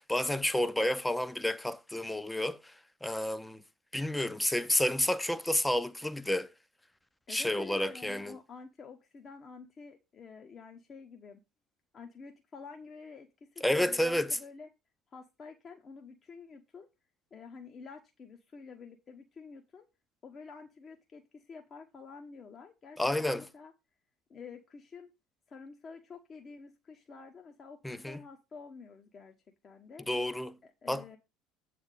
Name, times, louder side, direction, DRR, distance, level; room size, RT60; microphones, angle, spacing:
voice 1, 0.0-2.7 3.0-3.6 3.9-6.5 7.3-8.4 13.6-14.4 23.0-23.5 27.8-28.2 30.1-30.6 30.9-31.2, left 1 dB, 5° left, 0.6 m, -30 dB
voice 2, 7.3-11.4 11.9-14.7 15.1-16.9 17.3-19.9 20.2-23.7 24.3-25.1 25.5-29.4 29.6-30.1 30.6-31.2, left 5 dB, 35° left, 1.0 m, -49 dB
8.1 x 3.5 x 6.5 m
figure-of-eight pair, 65°, 0 cm